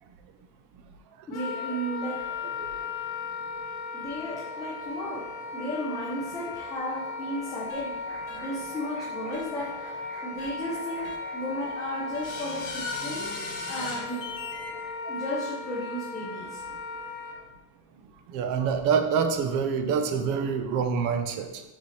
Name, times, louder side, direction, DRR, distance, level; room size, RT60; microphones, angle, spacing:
Wind instrument woodwind instrument, 1.3-17.4, left 4 dB, 70° left, 1.7 m, -37 dB
voice 1, 1.3-2.2 3.9-5.2 5.5-7.9 8.3-13.4 13.7-14.2 15.1-16.6, equal, 10° left, -6 dB, 0.5 m, -34 dB
sound 1, 4.6-14.8, equal, 70° right, 1.6 m, -50 dB
sound 2, 7.7-7.8 8.3-8.4 9.3-9.4 10.4-10.5 11.0-11.2 12.1-14.7, left 4 dB, 25° left, 1.2 m, -37 dB
voice 2, 18.3-21.6, right 6 dB, 45° right, 7 dB, 0.6 m, -27 dB
6.7 x 5.6 x 3.2 m, 1.0 s
cardioid pair, 180°, 46 cm